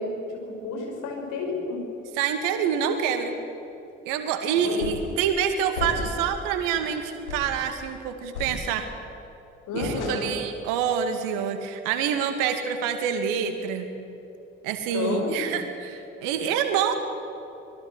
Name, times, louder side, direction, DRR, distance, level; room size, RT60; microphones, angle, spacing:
voice 1, 0.0-1.8 4.6-4.9 9.7-10.3 14.9-15.5, left 3 dB, 60° left, 1 dB, 5.8 m, -30 dB
voice 2, 2.2-3.3 4.1-8.9 9.7-13.9 14.6-17.0, right 7 dB, 70° right, 8 dB, 2.3 m, -27 dB
sound 1, 4.8-5.2 5.8-6.4 6.8-6.9 7.3-7.6 8.3-9.0 9.8-10.5, left 3 dB, 80° left, 2.8 m, -34 dB
24.5 x 21.5 x 7.9 m, 2.9 s
figure-of-eight pair, 45°, 34 cm